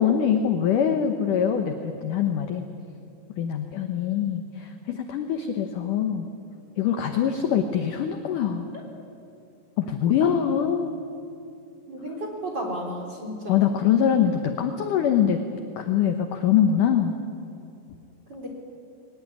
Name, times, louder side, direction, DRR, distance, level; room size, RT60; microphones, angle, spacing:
voice 1, 0.0-2.7 3.4-6.3 6.8-8.7 9.8-10.9 13.5-15.4 15.8-17.1, left 8 dB, 70° left, 6 dB, 2.0 m, -23 dB
voice 2, 11.9-13.6 18.3-18.5, equal, 25° right, 0 dB, 3.7 m, -33 dB
22.0 x 19.5 x 9.7 m, 2.7 s
omnidirectional pair, 5.2 m